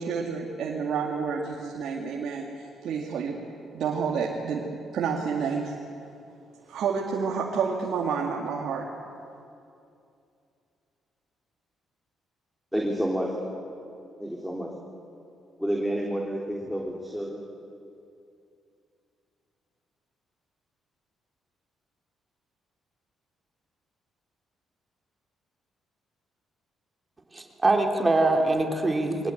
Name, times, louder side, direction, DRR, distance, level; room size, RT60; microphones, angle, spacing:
voice 1, 0.0-2.5 2.8-3.4 3.7-4.6 4.9-5.7 6.7-8.8, right 6 dB, 70° right, -2 dB, 2.3 m, -29 dB
voice 2, 12.7-13.3 14.2-14.7 15.6-17.5, equal, ahead, -2 dB, 3.6 m, -29 dB
voice 3, 27.3-29.3, right 2 dB, 25° right, 3 dB, 3.2 m, -23 dB
23.0 x 18.5 x 9.2 m, 2.5 s
supercardioid pair, 60°, 0 cm